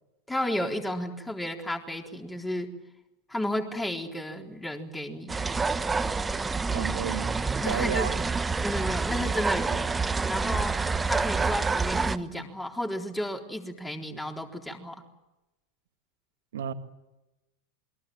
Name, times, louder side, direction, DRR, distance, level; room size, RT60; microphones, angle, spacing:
voice 1, 0.3-2.7 3.3-5.4 7.6-8.1 8.6-9.8 10.3-10.8 11.0-15.0, left 1 dB, 10° left, 2 dB, 4.1 m, -32 dB
sound 1, 5.3-12.2, right 4 dB, 15° right, 1.2 m, -28 dB
voice 2, 6.7-7.4 7.7-8.2 16.5-16.7, right 10 dB, 70° right, 8 dB, 2.0 m, -32 dB
28.5 x 22.5 x 7.8 m, 1.0 s
hypercardioid pair, 90°, 0 cm